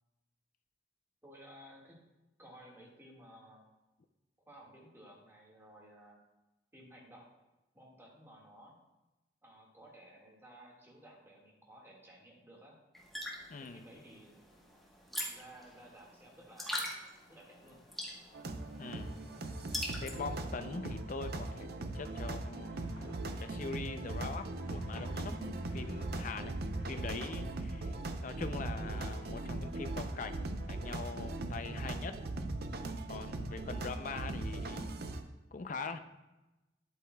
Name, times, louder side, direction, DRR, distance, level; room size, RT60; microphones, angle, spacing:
voice 1, 1.2-2.0 2.4-3.7 4.5-6.2 6.7-7.3 7.7-8.8 9.4-12.8 13.6-14.7 15.3-16.9 17.3-17.8, right 1 dB, 15° right, -2 dB, 1.8 m, -56 dB
sound 1, 12.9-20.4, equal, ahead, 1.1 m, -43 dB
voice 2, 13.5-13.9 18.8-19.2 20.0-22.8 23.4-26.6 26.9-27.9 28.2-32.2 33.1-34.9 35.5-36.0, left 4 dB, 45° left, 9 dB, 0.5 m, -43 dB
sound 2, 17.2-21.6 22.2-26.1, left 1 dB, 80° left, 1.4 m, -56 dB
sound 3, 18.3-35.2, right 2 dB, 60° right, 0.6 m, -39 dB
10.5 x 8.2 x 2.3 m, 1.0 s
head